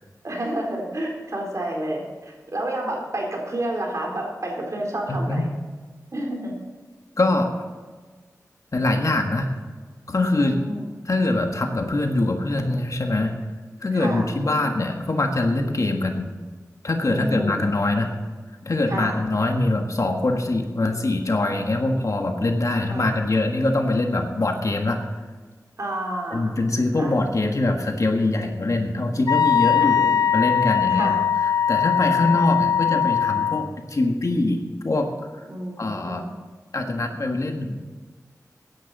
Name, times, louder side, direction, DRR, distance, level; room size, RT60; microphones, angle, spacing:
voice 1, 0.2-5.5 6.1-6.5 10.4-10.9 13.9-14.3 17.1-17.7 18.9-19.2 22.9-23.1 25.8-26.5 27.0-27.2 29.8-30.1 30.9-31.2 32.2-32.5 35.5-36.3, right 1 dB, 55° right, -1 dB, 3.9 m, -30 dB
voice 2, 5.1-5.4 7.2-7.5 8.7-9.5 10.1-10.6 11.0-13.4 13.8-16.3 16.8-18.1 18.6-25.0 26.3-35.4 35.8-36.2 36.7-38.0, left 2 dB, 55° left, 3 dB, 1.7 m, -23 dB
Wind instrument woodwind instrument, 29.3-33.7, left 8 dB, 80° left, 0.5 m, -21 dB
16.0 x 10.5 x 4.2 m, 1.4 s
wide cardioid pair, 75°, 6 cm